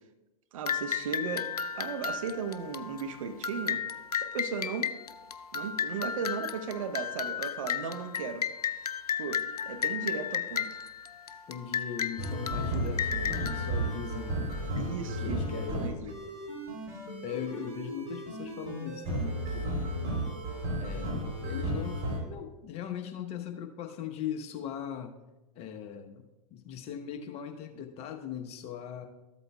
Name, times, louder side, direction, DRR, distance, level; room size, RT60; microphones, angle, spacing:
voice 1, 0.5-1.5 1.8-3.8 4.1-4.9 5.5-8.5 9.2-10.7 14.8-16.0, right 5 dB, 60° right, 8 dB, 0.9 m, -36 dB
sound 1, 0.7-14.8, left 7 dB, 85° left, 0.4 m, -34 dB
voice 2, 11.5-14.4 15.0-16.2 17.2-19.7 20.8-25.2 25.5-26.2 26.5-29.1, left 9 dB, 35° left, 5 dB, 1.0 m, -39 dB
sound 2, 12.2-22.2, right 1 dB, 40° right, 3.4 m, -34 dB
13.5 x 8.1 x 2.3 m, 1.0 s
figure-of-eight pair, 100°, 19 cm